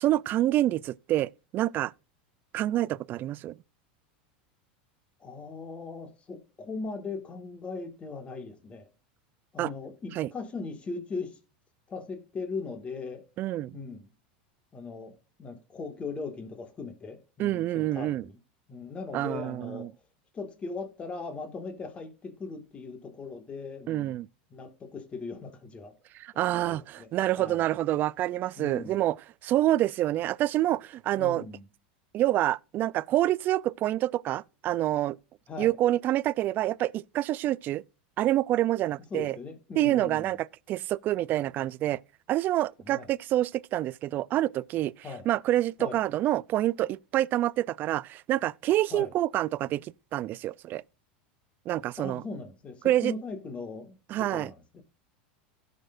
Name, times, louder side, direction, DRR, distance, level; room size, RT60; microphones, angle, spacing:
voice 1, 0.0-1.9 2.5-3.5 9.6-9.7 10.2-10.3 13.4-13.8 17.4-18.3 19.1-19.9 23.9-24.3 26.1-29.2 29.4-31.4 32.1-35.2 35.6-37.8 38.2-39.4 39.8-42.0 42.3-44.9 45.3-50.8 51.7-52.2 52.8-53.1 54.1-54.5, right 14 dB, 40° right, 0.3 m, -27 dB
voice 2, 5.2-8.9 9.5-11.4 11.9-13.2 13.7-14.1 14.7-18.4 18.7-19.9 20.3-24.2 24.5-25.9 26.3-27.1 27.4-27.7 28.6-29.0 31.2-31.6 35.5-35.8 39.1-40.3 42.8-43.1 45.0-45.3 45.8-46.0 48.9-49.1 52.0-54.8, left 4 dB, 25° left, 1.8 m, -39 dB
16.5 x 6.6 x 2.5 m
supercardioid pair, 125°, 5 cm